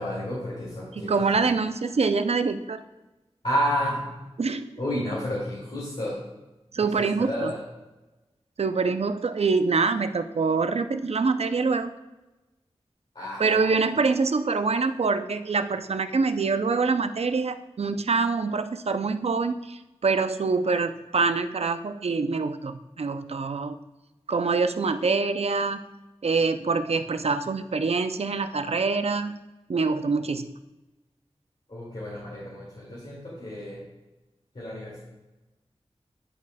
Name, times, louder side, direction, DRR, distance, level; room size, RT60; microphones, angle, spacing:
voice 1, 0.0-1.4 3.4-4.1 4.8-6.2 6.8-7.6 13.1-13.5 31.7-33.8 34.5-35.0, equal, 55° left, -8 dB, 2.2 m, -31 dB
voice 2, 1.1-2.8 4.4-4.8 6.7-7.5 8.6-11.9 13.4-23.8 24.3-25.8 26.2-29.4 29.7-30.5, right 4 dB, 70° right, 10 dB, 0.4 m, -25 dB
10.5 x 4.8 x 2.2 m, 1.1 s
wide cardioid pair, 50°, 11 cm